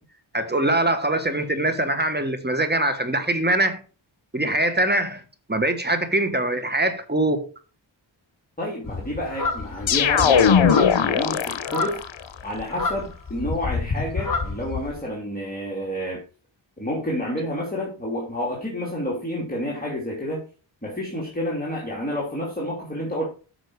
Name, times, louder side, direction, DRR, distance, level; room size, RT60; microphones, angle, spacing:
voice 1, 0.3-3.8 4.3-5.2 5.5-7.5, right 1 dB, 20° right, 1.5 m, -23 dB
voice 2, 8.6-12.0 12.4-16.2 16.8-20.5 20.8-23.3, left 1 dB, 20° left, 2.9 m, -29 dB
sound 1, 8.8-15.0, left 4 dB, 40° left, 3.1 m, -29 dB
sound 2, 9.9-12.1, left 7 dB, 70° left, 0.9 m, -19 dB
9.8 x 6.2 x 4.8 m
wide cardioid pair, 85°, 48 cm